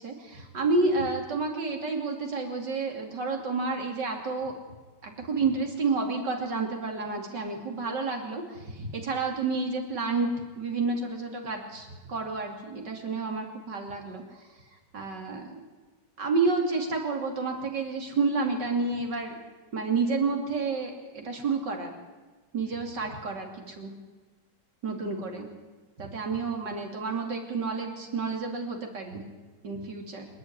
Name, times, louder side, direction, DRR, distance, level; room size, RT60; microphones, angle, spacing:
voice 1, 0.0-4.5 5.0-10.3 10.6-14.2 14.9-15.6 16.2-19.4 19.7-21.9 22.5-23.9 24.8-25.5 26.0-29.2 29.6-30.3, right 4 dB, 70° right, 2 dB, 3.5 m, -30 dB
26.5 x 11.0 x 9.6 m, 1.3 s
omnidirectional pair, 2.0 m